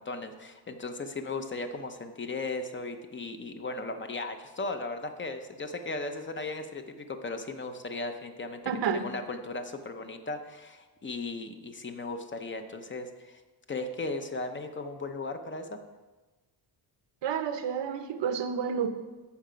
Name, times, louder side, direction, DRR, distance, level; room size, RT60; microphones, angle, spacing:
voice 1, 0.0-13.4 13.7-15.8, left 3 dB, 25° left, 6 dB, 0.7 m, -37 dB
voice 2, 8.7-9.1 17.2-18.9, right 7 dB, 85° right, 8 dB, 1.0 m, -30 dB
14.0 x 5.7 x 5.1 m, 1.2 s
wide cardioid pair, 170°, 42 cm